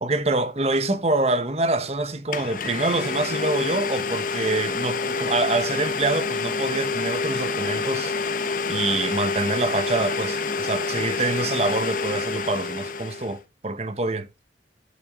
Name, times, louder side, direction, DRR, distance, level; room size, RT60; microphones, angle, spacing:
voice 1, 0.0-8.1 8.7-14.3, right 2 dB, 35° right, 1.0 m, -26 dB
Domestic sounds home sounds, 1.8-1.9 2.3-13.4, left 4 dB, 50° left, 0.9 m, -27 dB
8.7 x 7.3 x 3.6 m
head